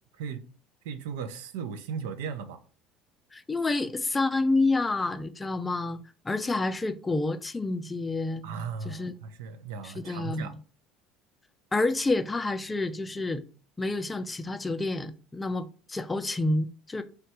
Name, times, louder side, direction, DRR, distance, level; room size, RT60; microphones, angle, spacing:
voice 1, 0.8-2.6 8.4-10.5, right 6 dB, 80° right, 0.4 m, -36 dB
voice 2, 3.3-8.4 8.8-9.1 9.8-10.6 11.7-13.4 13.8-17.0, left 2 dB, 20° left, 0.4 m, -29 dB
3.1 x 2.2 x 4.1 m
hypercardioid pair, 80°, 0 cm